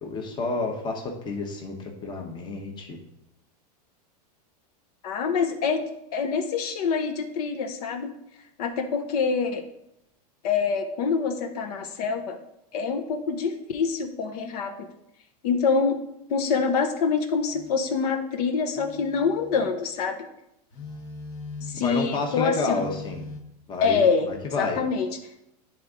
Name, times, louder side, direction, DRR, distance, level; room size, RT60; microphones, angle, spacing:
voice 1, 0.0-1.7 2.0-3.0 21.8-23.2 23.7-24.8, left 3 dB, 20° left, 2 dB, 0.9 m, -30 dB
voice 2, 5.0-5.8 6.1-8.1 8.6-9.6 10.4-12.4 12.7-14.9 15.4-16.0 16.3-20.2 21.6-22.9 23.8-24.3 24.6-25.1, left 5 dB, 65° left, 5 dB, 0.7 m, -25 dB
Telephone, 17.5-17.8 18.7-19.8 20.7-21.9 22.7-23.4, left 3 dB, 45° left, 1.1 m, -40 dB
10.5 x 3.5 x 3.7 m, 0.83 s
supercardioid pair, 140°, 21 cm